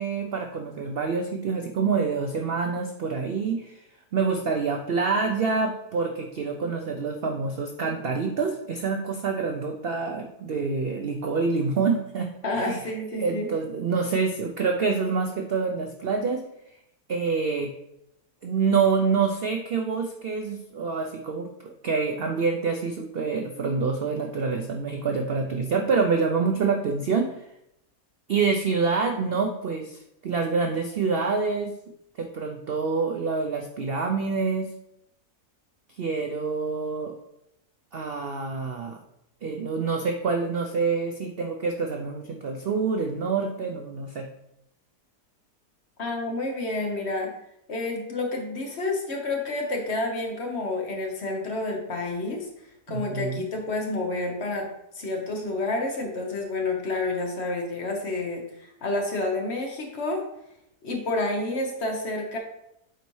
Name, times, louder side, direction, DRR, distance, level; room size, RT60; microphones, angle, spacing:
voice 1, 0.0-3.8 4.1-12.8 13.1-16.4 17.1-17.7 18.4-27.3 28.3-31.7 32.2-34.7 36.0-37.1 37.9-39.0 39.4-44.3 52.9-53.5, right 4 dB, 75° right, 4 dB, 0.5 m, -26 dB
voice 2, 12.4-13.5 46.0-47.3 47.7-54.7 54.9-60.2 60.8-62.4, left 2 dB, 45° left, 1 dB, 1.2 m, -29 dB
8.9 x 4.0 x 3.1 m, 0.81 s
omnidirectional pair, 1.7 m